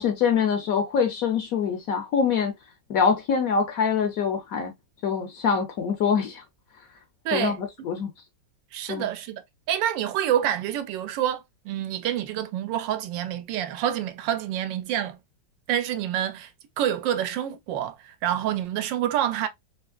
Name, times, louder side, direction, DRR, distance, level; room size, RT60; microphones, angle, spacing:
voice 1, 0.0-2.5 2.9-4.7 5.0-6.4 7.3-7.6 7.8-8.1 8.9-9.1, left 6 dB, 65° left, 0.9 m, -24 dB
voice 2, 7.2-7.6 8.7-9.4 9.7-15.2 15.7-16.5 16.8-19.5, right 11 dB, 85° right, 1.3 m, -27 dB
3.5 x 2.9 x 2.2 m
omnidirectional pair, 1.9 m